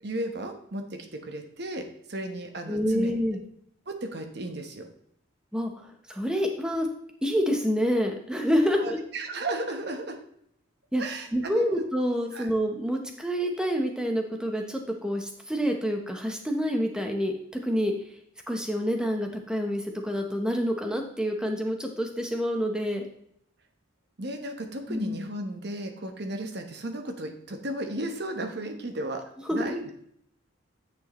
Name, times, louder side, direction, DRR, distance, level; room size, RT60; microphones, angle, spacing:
voice 1, 0.0-3.1 3.9-4.9 8.7-10.2 11.0-11.8 12.3-12.5 24.2-29.2 29.5-29.9, right 1 dB, 55° right, 5 dB, 1.0 m, -34 dB
voice 2, 2.7-3.4 5.5-6.9 7.2-9.0 10.9-11.0 11.3-17.9 18.5-23.0 24.9-25.2 29.5-29.6, equal, 5° right, 3 dB, 0.8 m, -27 dB
9.7 x 6.3 x 3.1 m, 0.71 s
head